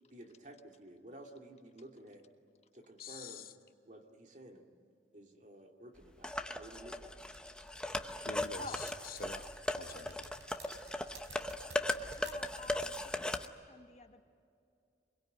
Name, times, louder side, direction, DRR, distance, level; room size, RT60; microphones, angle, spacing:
voice 1, 0.1-2.2 2.7-3.5 3.8-4.7 5.1-7.2, right 1 dB, 45° right, 3 dB, 2.4 m, -53 dB
voice 2, 3.0-3.5 8.2-9.4 9.7-10.3, left 5 dB, 55° left, 9 dB, 1.0 m, -47 dB
sound 1, 6.2-13.5, left 1 dB, 5° left, 0.8 m, -38 dB
sound 2, 7.3-12.3, right 5 dB, 90° right, 4.0 m, -54 dB
voice 3, 12.2-14.2, left 2 dB, 35° left, 7 dB, 1.4 m, -50 dB
24.5 x 22.5 x 9.4 m, 2.5 s
head